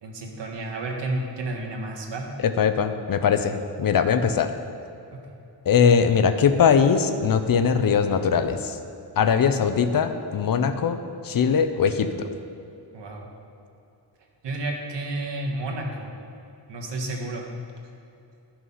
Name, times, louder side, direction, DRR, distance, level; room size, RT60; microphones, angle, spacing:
voice 1, 0.0-2.3 12.9-13.3 14.4-16.1 16.7-17.5, right 2 dB, 75° right, 1 dB, 1.6 m, -31 dB
voice 2, 2.4-4.5 5.7-8.8 9.2-12.3, left 6 dB, 55° left, 9 dB, 0.7 m, -21 dB
12.5 x 5.9 x 5.6 m, 2.7 s
wide cardioid pair, 125°, 42 cm